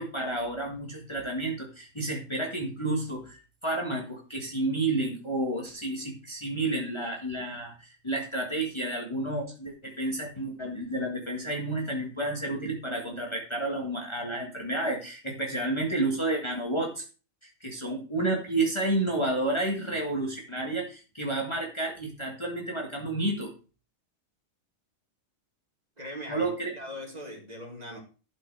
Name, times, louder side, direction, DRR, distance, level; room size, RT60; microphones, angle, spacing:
voice 1, 0.0-17.0 17.4-23.5 26.3-26.7, right 2 dB, 20° left, 0 dB, 1.8 m, -31 dB
voice 2, 26.0-28.0, equal, 30° right, 0 dB, 2.9 m, -40 dB
12.0 x 5.4 x 4.7 m, 0.34 s
omnidirectional pair, 1.4 m